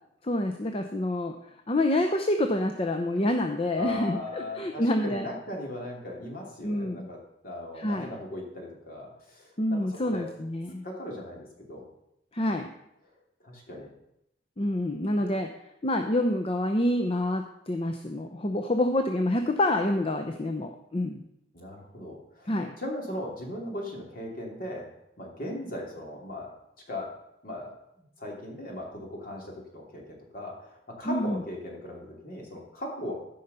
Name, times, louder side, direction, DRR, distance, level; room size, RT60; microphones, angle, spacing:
voice 1, 0.2-1.4 1.7-5.2 6.6-7.1 7.8-8.1 9.6-10.8 12.3-12.7 14.6-15.5 15.8-21.2 22.5-22.7 31.0-31.4, left 1 dB, 30° left, 5 dB, 0.7 m, -27 dB
voice 2, 3.7-7.2 7.4-10.3 10.8-11.8 13.4-13.9 15.3-15.4 21.5-24.9 25.2-26.5 26.9-27.1 27.4-33.1, left 1 dB, 50° left, 0 dB, 2.8 m, -38 dB
13.0 x 5.5 x 6.8 m, 0.82 s
head